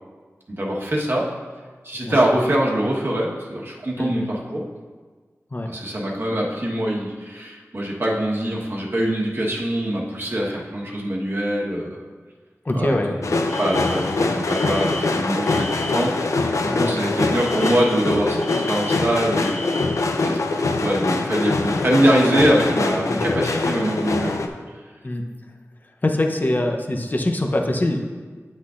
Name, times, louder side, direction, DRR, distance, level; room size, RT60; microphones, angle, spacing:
voice 1, 0.5-1.3 1.8-4.7 5.7-12.1 12.7-13.0 13.6-19.7 20.2-24.4, right 1 dB, 45° right, -3 dB, 1.2 m, -23 dB
voice 2, 4.0-4.3 5.5-5.7 11.9-12.0 12.6-13.2 16.7-16.9 23.1-23.3 25.0-25.2 26.0-28.0, left 1 dB, 35° left, 3 dB, 0.7 m, -23 dB
sound 1, 13.2-24.5, left 3 dB, 80° left, 0.5 m, -23 dB
Alarm, 13.5-16.2 17.4-20.1, left 2 dB, 5° left, 0.8 m, -36 dB
9.4 x 6.1 x 2.5 m, 1.4 s
wide cardioid pair, 70°, 5 cm